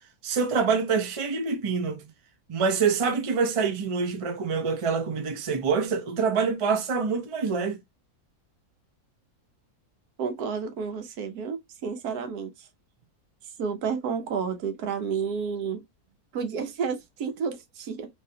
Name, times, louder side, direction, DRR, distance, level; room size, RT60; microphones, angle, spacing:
voice 1, 0.2-2.0 2.5-7.8, right 5 dB, 50° right, 0.4 m, -26 dB
voice 2, 10.2-12.7 13.6-15.8 16.3-18.1, right 6 dB, 80° right, 1.2 m, -31 dB
3.1 x 2.7 x 2.7 m
omnidirectional pair, 1.6 m